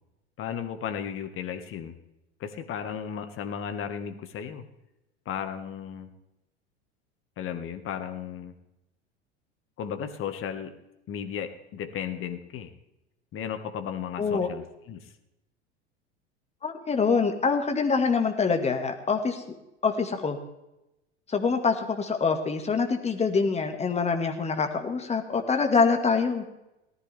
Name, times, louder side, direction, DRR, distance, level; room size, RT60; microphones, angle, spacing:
voice 1, 0.4-2.0 2.4-4.6 5.3-6.1 7.4-8.5 9.8-10.7 11.1-12.7 13.3-15.1, left 8 dB, 40° left, 9 dB, 1.7 m, -35 dB
voice 2, 14.2-14.5 16.6-19.4 19.8-20.4 21.3-26.4, left 5 dB, 20° left, 5 dB, 2.1 m, -25 dB
18.5 x 14.0 x 3.6 m, 0.91 s
figure-of-eight pair, 80°, 34 cm